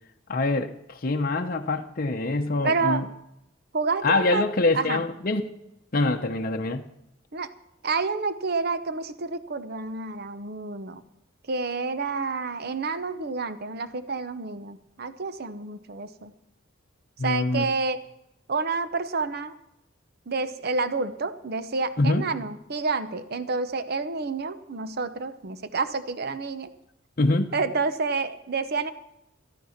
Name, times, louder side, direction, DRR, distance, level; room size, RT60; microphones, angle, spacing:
voice 1, 0.3-3.1 4.0-5.4 5.9-6.9 17.2-17.7 22.0-22.3 27.2-27.5, left 2 dB, 45° left, 4 dB, 0.8 m, -25 dB
voice 2, 2.6-3.0 3.7-4.5 4.7-5.0 7.3-7.5 7.8-11.0 11.5-16.3 17.2-18.0 18.5-19.6 20.3-26.7 27.5-28.9, right 4 dB, 50° right, 12 dB, 0.9 m, -29 dB
13.5 x 12.5 x 5.8 m, 0.84 s
head